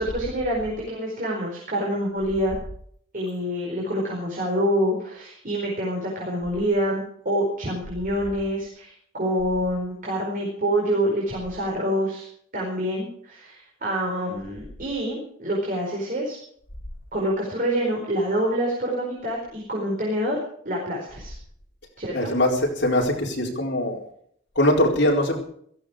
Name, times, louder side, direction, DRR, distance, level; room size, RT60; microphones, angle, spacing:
voice 1, 0.0-2.6 3.1-12.3 12.5-16.4 17.1-20.4 20.6-21.3 22.0-22.3, equal, 45° right, -2 dB, 4.8 m, -26 dB
voice 2, 22.1-24.0 24.6-25.4, left 1 dB, 55° left, 0 dB, 4.4 m, -22 dB
17.0 x 15.0 x 5.1 m, 0.64 s
head